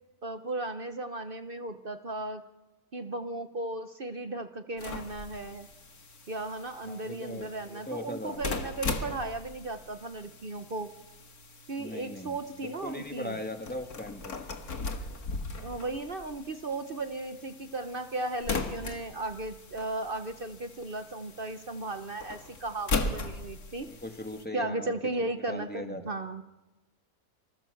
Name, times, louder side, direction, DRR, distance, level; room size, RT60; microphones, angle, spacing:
voice 1, 0.2-2.4 2.9-5.7 6.3-10.9 11.7-13.4 15.6-23.9 24.5-26.4, right 2 dB, 40° right, 8 dB, 1.1 m, -36 dB
sound 1, 4.8-24.5, left 3 dB, 85° left, 2.4 m, -39 dB
voice 2, 6.8-8.4 11.8-12.4 12.6-14.4 23.8-26.2, left 1 dB, 5° left, 4 dB, 2.4 m, -39 dB
27.0 x 25.0 x 7.2 m, 1.1 s
omnidirectional pair, 1.5 m